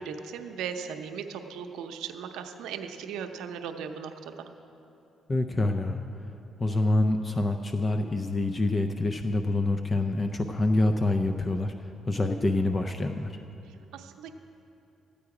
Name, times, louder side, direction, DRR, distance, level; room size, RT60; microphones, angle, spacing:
voice 1, 0.0-4.5 13.7-14.3, right 7 dB, 90° right, 6 dB, 0.6 m, -38 dB
voice 2, 5.3-6.0 6.6-11.7 12.1-13.4, left 2 dB, 30° left, 6 dB, 0.5 m, -26 dB
13.5 x 8.5 x 4.8 m, 2.9 s
cardioid pair, 90°, 0 cm